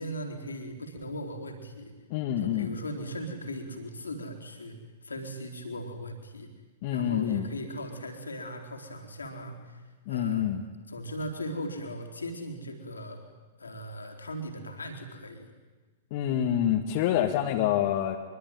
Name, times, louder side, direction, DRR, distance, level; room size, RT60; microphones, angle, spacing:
voice 1, 0.0-1.9 2.4-4.8 5.0-6.5 6.9-9.8 10.1-10.5 10.9-13.2 13.6-15.5, equal, 75° left, 4 dB, 3.9 m, -38 dB
voice 2, 2.1-2.8 6.8-7.5 10.1-10.6 16.1-18.2, left 10 dB, 45° left, 2 dB, 2.0 m, -27 dB
24.5 x 23.0 x 9.4 m, 1.3 s
figure-of-eight pair, 100°, 0 cm